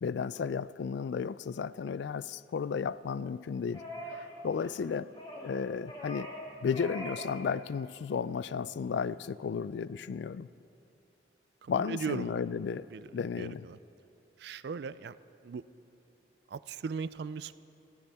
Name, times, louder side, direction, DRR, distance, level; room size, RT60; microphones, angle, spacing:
voice 1, 0.0-3.8 4.1-5.1 5.4-6.3 6.6-10.5 11.7-12.9 13.1-13.7, left 6 dB, 70° left, 18 dB, 0.3 m, -33 dB
sound 1, 3.7-4.3 4.5-4.8 5.2-5.5 5.9-6.4 6.7-7.3 7.6-7.8, equal, 30° left, 2.6 m, -42 dB
voice 2, 11.6-12.4 12.9-13.8 14.4-15.2 15.4-15.6 16.5-17.6, right 5 dB, 60° right, 16 dB, 0.3 m, -38 dB
21.5 x 15.0 x 3.5 m, 2.8 s
head